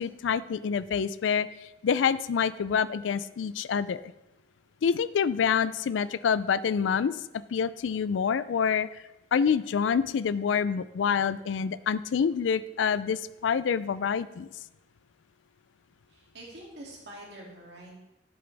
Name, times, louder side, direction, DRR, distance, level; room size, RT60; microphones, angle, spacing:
voice 1, 0.0-1.5 1.8-4.0 4.8-7.1 7.5-8.9 9.3-14.5, left 7 dB, 85° left, 17 dB, 0.4 m, -27 dB
voice 2, 16.1-18.0, right 1 dB, 60° right, -3 dB, 2.7 m, -46 dB
11.0 x 7.8 x 3.4 m, 0.96 s
head